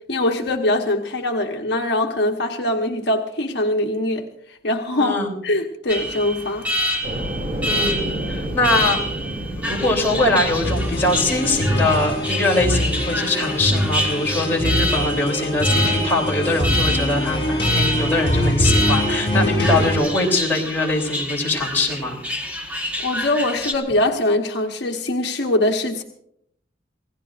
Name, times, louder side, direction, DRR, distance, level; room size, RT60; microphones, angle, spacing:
voice 1, 0.1-6.7 23.0-26.0, left 1 dB, 60° left, 2 dB, 1.2 m, -22 dB
voice 2, 5.0-5.3 7.6-8.0 8.3-9.0 9.6-22.2, left 2 dB, 10° left, -3 dB, 3.2 m, -22 dB
Alarm, 5.9-23.7, equal, 10° right, 1.4 m, -27 dB
sound 1, 7.0-12.1, right 1 dB, 35° right, 2.5 m, -30 dB
sound 2, 10.6-20.0, equal, 30° left, 6.2 m, -23 dB
27.5 x 16.5 x 2.5 m, 0.70 s
head